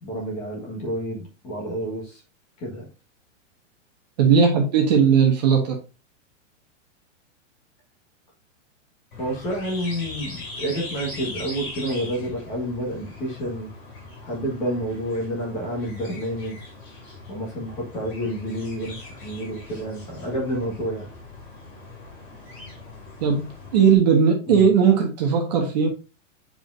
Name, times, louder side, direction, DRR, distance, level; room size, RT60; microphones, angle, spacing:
voice 1, 0.0-2.2 2.6-2.9 9.2-13.7 14.2-16.6 17.3-21.1 24.5-24.7, equal, 15° left, 1.6 m, -29 dB
voice 2, 4.2-5.8 23.2-25.9, right 6 dB, 35° right, 1.3 m, -18 dB
sound 1, 9.1-24.0, left 2 dB, 40° left, 4.4 m, -40 dB
8.7 x 4.9 x 2.7 m
supercardioid pair, 180°, 38 cm